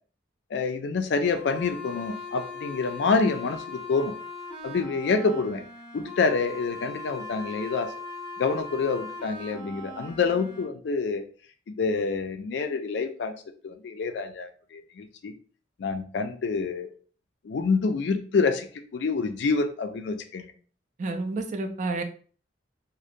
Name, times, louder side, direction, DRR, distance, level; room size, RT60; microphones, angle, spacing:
voice 1, 0.5-4.2 4.6-5.6 5.9-7.9 8.4-11.2 11.7-13.3 13.6-15.3 15.8-16.9 17.4-20.5, left 4 dB, 70° left, 8 dB, 0.4 m, -27 dB
sound 1, 1.4-10.6, left 3 dB, 35° left, 1.3 m, -39 dB
voice 2, 21.0-22.0, right 3 dB, 45° right, 5 dB, 0.4 m, -30 dB
2.7 x 2.1 x 2.5 m, 0.41 s
head